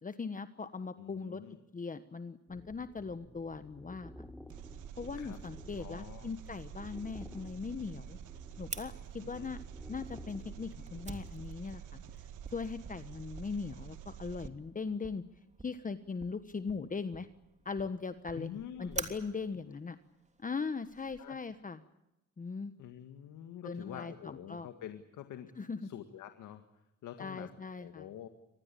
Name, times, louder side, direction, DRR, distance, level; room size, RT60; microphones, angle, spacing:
voice 1, 0.0-1.4 1.7-4.1 5.0-8.2 8.6-9.6 9.9-15.2 15.6-17.3 17.6-18.5 18.8-20.0 20.4-21.8 22.4-22.7 23.6-24.7 25.6-25.9 27.2-28.1, left 4 dB, 25° left, 11 dB, 1.2 m, -40 dB
voice 2, 1.0-1.6 5.2-5.4 5.8-6.3 9.3-9.5 18.3-19.0 19.7-19.8 21.2-21.4 22.8-25.5 25.8-26.6 27.0-28.3, left 10 dB, 85° left, 7 dB, 1.9 m, -47 dB
sound 1, 2.5-11.3, left 1 dB, ahead, 1.7 m, -53 dB
Engine, 4.5-14.5, right 9 dB, 80° right, 1.7 m, -48 dB
Fire, 8.7-21.2, right 3 dB, 25° right, 3.1 m, -48 dB
25.5 x 20.0 x 8.5 m, 0.92 s
cardioid pair, 90°, 30 cm